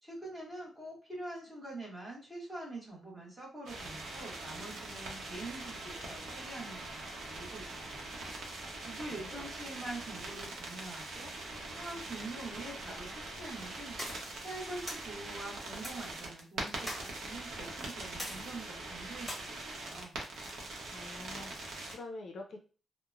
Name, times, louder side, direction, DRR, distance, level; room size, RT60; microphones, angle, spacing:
voice 1, 0.0-8.1 8.8-11.3 11.7-20.1, right 2 dB, 15° right, -4 dB, 1.1 m, -45 dB
sound 1, 3.7-21.9, right 2 dB, 80° right, 0.7 m, -43 dB
voice 2, 9.1-9.4 20.9-22.6, left 2 dB, 50° left, 2 dB, 0.4 m, -46 dB
sound 2, 14.0-14.4 14.9-15.1 15.8-16.1 16.9-17.3 18.2-18.7 19.3-19.4, left 1 dB, 10° left, 1.2 m, -42 dB
2.9 x 2.0 x 2.4 m, 0.36 s
wide cardioid pair, 150°, 0 cm